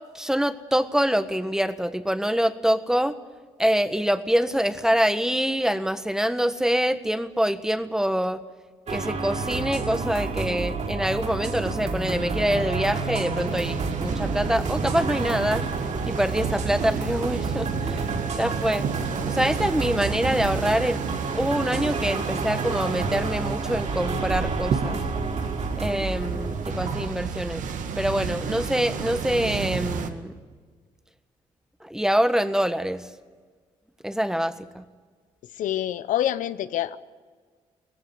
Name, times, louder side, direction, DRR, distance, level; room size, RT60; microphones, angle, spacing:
voice 1, 0.1-3.1 3.6-8.4 8.9-15.6 16.0-18.9 19.3-21.0 21.3-25.0 25.8-27.6 28.0-30.3 31.8-33.1 34.0-34.8, equal, 5° right, 11 dB, 1.5 m, -25 dB
sound 1, 8.9-27.1, right 4 dB, 55° right, 5.1 m, -30 dB
sound 2, 13.3-30.1, right 6 dB, 75° right, 1.9 m, -32 dB
voice 2, 35.6-37.0, left 11 dB, 75° left, 13 dB, 0.8 m, -26 dB
19.0 x 16.0 x 9.7 m, 1.6 s
supercardioid pair, 60°, 13 cm